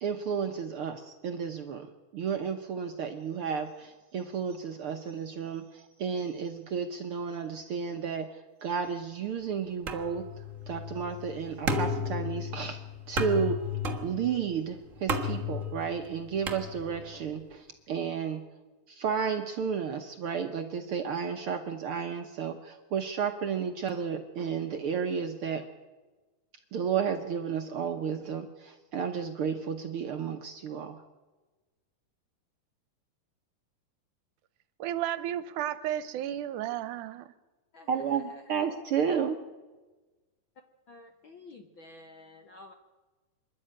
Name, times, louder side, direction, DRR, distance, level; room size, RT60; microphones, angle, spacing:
voice 1, 0.0-10.3 10.7-12.8 13.1-18.4 18.9-25.6 26.7-31.0 37.9-39.4, right 7 dB, 65° right, 1.5 m, -32 dB
sound 1, 9.9-17.2, left 2 dB, 40° right, 1.1 m, -34 dB
voice 2, 34.8-37.3, right 12 dB, 80° right, 2.3 m, -33 dB
voice 3, 37.7-38.8 40.9-42.7, left 2 dB, 60° left, 1.3 m, -51 dB
26.0 x 11.5 x 8.9 m
omnidirectional pair, 3.6 m